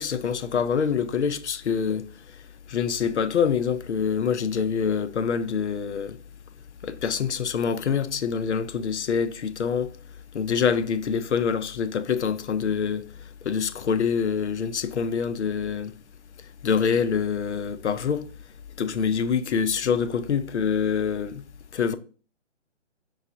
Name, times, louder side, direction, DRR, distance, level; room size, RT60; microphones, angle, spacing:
voice 1, 0.0-2.0 2.7-6.2 6.8-9.9 10.3-13.0 13.5-15.9 16.6-18.2 18.8-21.4 21.7-22.0, left 6 dB, 65° left, 0.5 m, -25 dB
4.7 x 3.4 x 2.9 m
hypercardioid pair, 175°, 37 cm